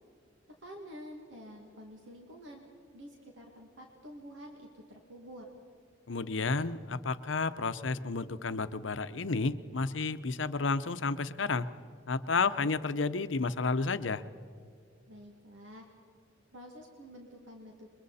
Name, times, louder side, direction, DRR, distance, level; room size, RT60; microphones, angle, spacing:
voice 1, 0.5-2.7 2.9-5.5 15.1-15.9 16.5-17.9, equal, 85° right, 1 dB, 2.3 m, -49 dB
voice 2, 6.1-11.7 12.1-14.2, left 4 dB, 80° left, 12 dB, 0.8 m, -31 dB
28.5 x 23.0 x 4.2 m, 2.3 s
head